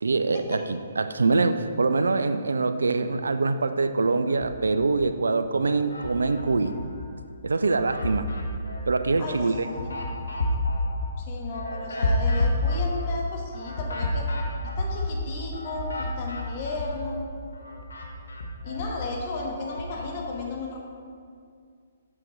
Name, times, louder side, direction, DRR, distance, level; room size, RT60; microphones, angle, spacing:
voice 1, 0.0-6.8 7.4-8.3 8.9-9.7, right 3 dB, 75° right, 10 dB, 0.4 m, -24 dB
sound 1, 4.3-5.1 5.5-7.1 7.5-17.2 17.5-20.1, left 1 dB, 75° left, 0.9 m, -30 dB
voice 2, 9.2-9.5 9.8-10.0 11.2-14.3 14.8-17.3 18.6-20.8, left 3 dB, 45° left, 0 dB, 1.3 m, -34 dB
7.5 x 5.9 x 3.2 m, 2.2 s
figure-of-eight pair, 130°, 0 cm